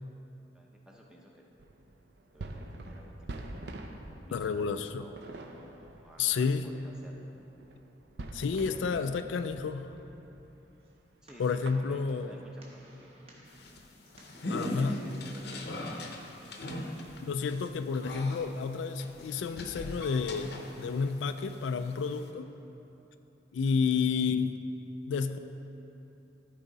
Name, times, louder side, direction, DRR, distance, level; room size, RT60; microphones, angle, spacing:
voice 1, 0.5-1.5 2.3-7.4 8.6-9.3 11.2-13.6 14.4-16.8, equal, 5° right, -2 dB, 0.7 m, -54 dB
sound 1, 1.6-10.5 10.8-11.0 11.3-13.2, right 2 dB, 60° right, 0.5 m, -46 dB
voice 2, 4.3-5.1 6.2-6.7 8.3-9.9 11.4-12.4 14.5-15.0 17.2-22.5 23.5-24.6 25.1-25.4, left 5 dB, 75° left, 10 dB, 0.3 m, -30 dB
sound 2, 10.8-15.8, right 1 dB, 30° right, 1.2 m, -58 dB
sound 3, 13.5-21.1 21.4-22.3, left 1 dB, 55° left, 0.7 m, -40 dB
13.5 x 4.8 x 4.0 m, 3.0 s
head